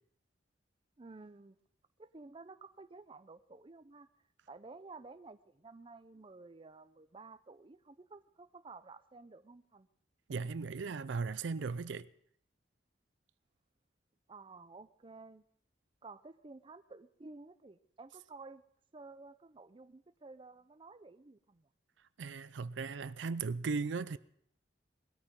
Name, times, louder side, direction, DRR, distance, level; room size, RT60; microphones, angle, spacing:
voice 1, 1.0-1.6 2.0-4.1 4.5-9.9 14.3-15.4 16.0-18.6 18.9-21.6, right 3 dB, 30° right, 0.5 m, -53 dB
voice 2, 10.3-12.1 22.2-24.2, right 4 dB, 85° right, 0.5 m, -37 dB
20.0 x 13.0 x 3.7 m
head